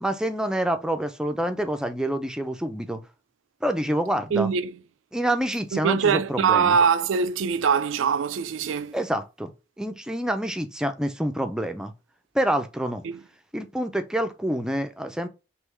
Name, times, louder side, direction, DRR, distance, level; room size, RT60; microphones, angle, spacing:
voice 1, 0.0-3.0 3.6-4.5 5.1-6.8 8.9-9.5 9.8-11.9 12.3-13.0 13.5-15.3, right 1 dB, 5° right, 0.4 m, -27 dB
voice 2, 4.3-4.7 5.7-8.9 13.0-13.1, right 6 dB, 80° right, 0.4 m, -22 dB
3.5 x 3.0 x 3.2 m
head